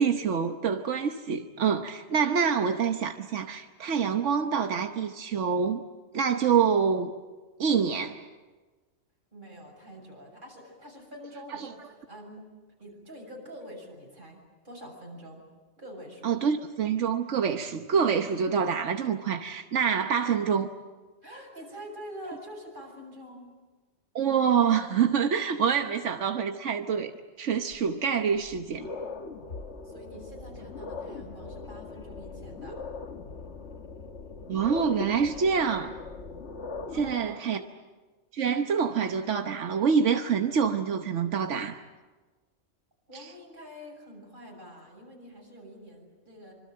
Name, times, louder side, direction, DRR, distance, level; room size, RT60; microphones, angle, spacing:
voice 1, 0.0-5.8 6.1-7.1 7.6-8.2 11.5-11.7 16.2-20.7 24.1-27.1 27.4-28.9 34.5-35.9 36.9-37.6 38.3-41.8 43.1-43.2, right 6 dB, 90° right, 6 dB, 1.3 m, -26 dB
voice 2, 9.3-12.5 12.8-14.4 14.6-15.4 15.8-16.3 21.2-23.5 29.8-32.8 36.9-37.4 43.1-46.5, equal, 45° right, 0 dB, 7.3 m, -45 dB
sound 1, 27.7-27.8 28.3-37.1, left 4 dB, 70° left, 1.6 m, -40 dB
26.0 x 25.5 x 7.7 m, 1.3 s
omnidirectional pair, 1.2 m